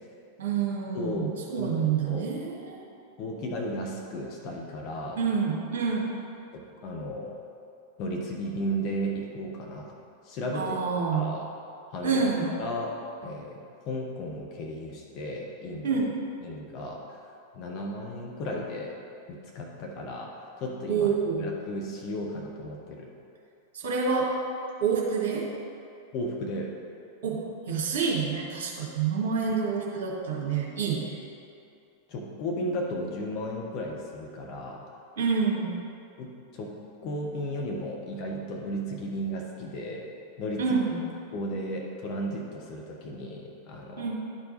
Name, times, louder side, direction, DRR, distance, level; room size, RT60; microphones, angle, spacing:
voice 1, 0.4-2.8 5.2-6.1 10.5-11.3 12.0-12.5 15.8-16.1 20.9-21.5 23.7-24.3 24.8-25.4 27.2-27.4 27.7-31.2 35.2-35.7 40.6-41.0 44.0-44.2, right 5 dB, 55° right, -3 dB, 1.6 m, -27 dB
voice 2, 0.9-2.3 3.2-5.2 6.5-7.3 8.0-9.9 10.2-10.8 11.1-11.5 11.9-16.0 16.4-17.2 17.5-19.0 19.3-21.1 21.4-23.2 26.1-26.7 29.5-29.6 32.1-34.8 36.2-36.7 37.0-40.1 40.4-40.8 41.3-44.1, equal, 40° left, 0 dB, 0.9 m, -34 dB
12.0 x 4.5 x 4.1 m, 2.6 s
figure-of-eight pair, 90°, 0 cm